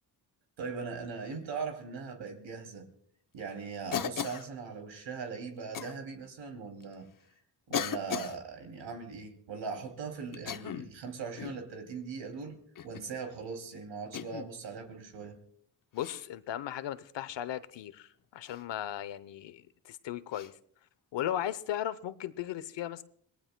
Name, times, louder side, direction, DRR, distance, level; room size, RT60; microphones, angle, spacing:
voice 1, 0.6-2.9 3.3-7.1 7.7-15.4, right 5 dB, 85° right, 2.8 m, -40 dB
Cough, 3.9-4.5 5.7-5.9 6.8-6.9 7.7-8.4 10.3-11.0 11.4-11.7 12.8-13.1 14.1-14.5 16.0-16.2 18.5-18.6 20.3-20.5, left 9 dB, 50° left, 0.8 m, -36 dB
voice 2, 15.9-20.5 21.1-23.0, left 11 dB, 85° left, 0.8 m, -36 dB
27.0 x 19.0 x 2.2 m
cardioid pair, 80°, 43 cm